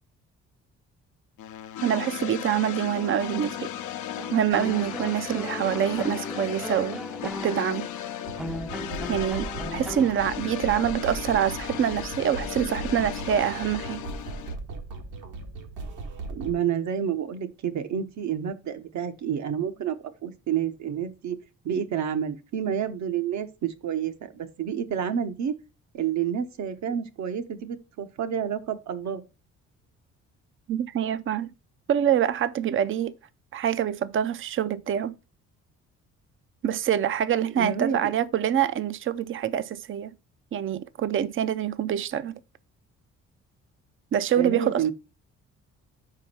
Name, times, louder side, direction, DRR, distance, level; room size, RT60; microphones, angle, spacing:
sound 1, 1.4-14.6, left 10 dB, 80° left, 0.8 m, -36 dB
voice 1, 1.8-3.7 4.3-7.9 9.1-14.0 30.7-31.5 31.9-33.1 33.5-35.1 36.6-40.1 40.5-42.4 44.1-44.9, right 9 dB, 45° right, 0.5 m, -26 dB
sound 2, 4.2-10.1, equal, ahead, 0.5 m, -38 dB
sound 3, 8.3-16.5, right 3 dB, 85° right, 1.6 m, -38 dB
voice 2, 16.3-21.4 21.6-25.5 25.9-29.2 37.5-38.1 44.4-44.9, right 8 dB, 70° right, 1.0 m, -29 dB
5.2 x 4.9 x 5.7 m
cardioid pair, 90°, 30 cm